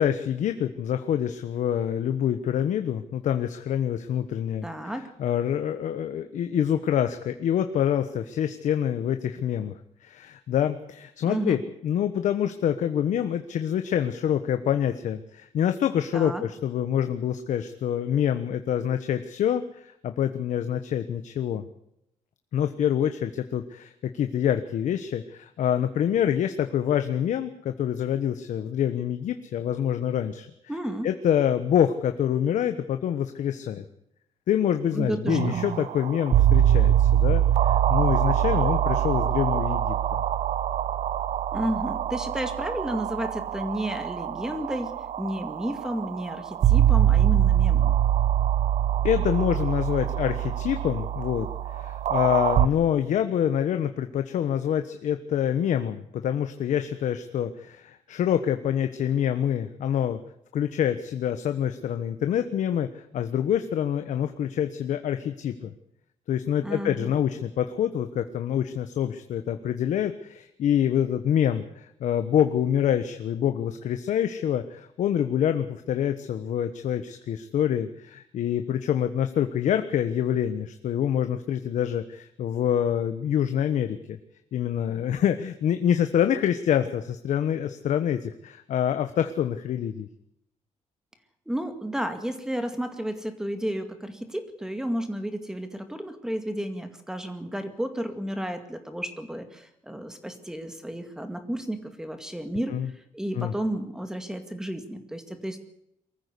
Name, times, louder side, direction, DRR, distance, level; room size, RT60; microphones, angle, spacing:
voice 1, 0.0-4.7 5.0-21.6 22.5-30.5 31.0-33.8 34.5-39.9 49.0-60.2 60.5-65.7 66.3-84.2 84.5-90.1 102.7-102.9 103.4-103.5, left 9 dB, 75° left, 8 dB, 1.2 m, -26 dB
voice 2, 4.6-5.1 11.2-11.6 16.1-16.4 30.7-31.1 34.9-35.6 41.5-48.0 66.6-67.2 91.5-105.6, right 1 dB, 5° right, 8 dB, 2.2 m, -32 dB
sound 1, 35.3-52.7, right 11 dB, 65° right, 0.8 m, -24 dB
23.0 x 15.0 x 8.3 m, 0.77 s
wide cardioid pair, 165°, 13 cm